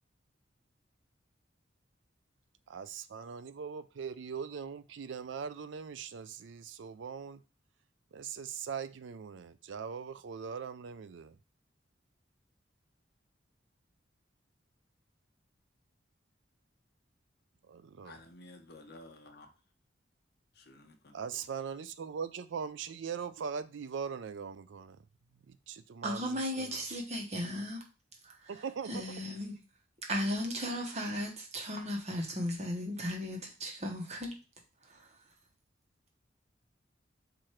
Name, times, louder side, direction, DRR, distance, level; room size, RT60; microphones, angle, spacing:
voice 1, 2.7-7.4 8.1-11.4 17.7-18.2 21.1-25.0 25.5-26.8 28.5-29.1, right 6 dB, 75° right, 0.4 m, -41 dB
voice 2, 18.0-19.5 20.6-21.2, left 2 dB, 55° left, 0.7 m, -53 dB
voice 3, 26.0-27.8 28.9-29.5 30.1-34.3 34.9-35.0, equal, 35° right, 1.0 m, -35 dB
4.8 x 2.5 x 4.3 m
head